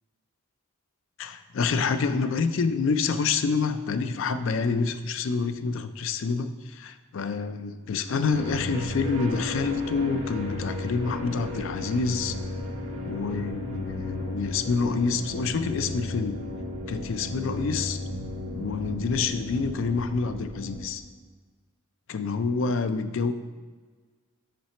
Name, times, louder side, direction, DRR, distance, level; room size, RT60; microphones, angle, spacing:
voice 1, 1.2-12.3 13.0-16.4 16.9-18.0 18.5-21.0 22.1-23.3, left 4 dB, 65° left, 10 dB, 0.4 m, -27 dB
sound 1, 8.3-20.9, left 1 dB, 80° right, 1.4 m, -34 dB
5.8 x 4.9 x 4.3 m, 1.4 s
head